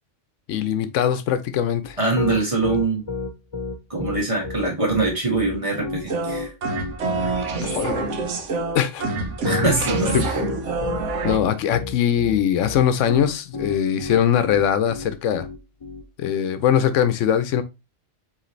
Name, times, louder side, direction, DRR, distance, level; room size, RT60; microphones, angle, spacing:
voice 1, 0.5-2.0 7.6-8.0 8.7-9.1 10.1-10.3 11.2-15.5 16.2-17.6, left 9 dB, 85° left, 1.0 m, -21 dB
Piano, 1.8-16.0, left 4 dB, 35° left, 0.5 m, -31 dB
voice 2, 2.0-3.1 3.9-6.5 9.4-10.3, right 3 dB, 25° right, 1.7 m, -23 dB
sound 1, 6.1-11.4, right 3 dB, 75° right, 1.1 m, -26 dB
4.9 x 3.1 x 3.1 m
omnidirectional pair, 1.2 m